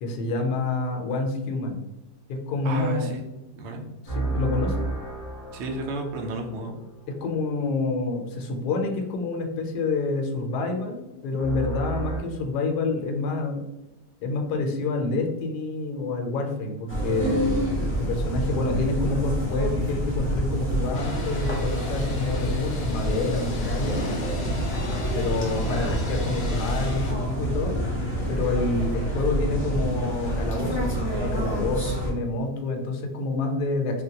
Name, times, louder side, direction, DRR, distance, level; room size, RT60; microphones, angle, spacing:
voice 1, 0.0-1.9 2.3-3.1 4.2-4.9 7.1-13.6 14.2-24.0 25.1-27.8 28.3-30.8 31.1-34.0, left 3 dB, 75° left, 3 dB, 1.1 m, -28 dB
voice 2, 2.6-3.8 5.5-6.8, right 2 dB, 70° right, 3 dB, 0.6 m, -32 dB
sound 1, 4.1-7.1 11.4-12.2, right 3 dB, 35° right, 1.1 m, -32 dB
sound 2, 16.9-32.1, equal, 15° left, 0.4 m, -27 dB
sound 3, 20.9-27.1, left 1 dB, 60° left, 0.7 m, -35 dB
3.6 x 2.1 x 2.7 m, 0.98 s
omnidirectional pair, 1.8 m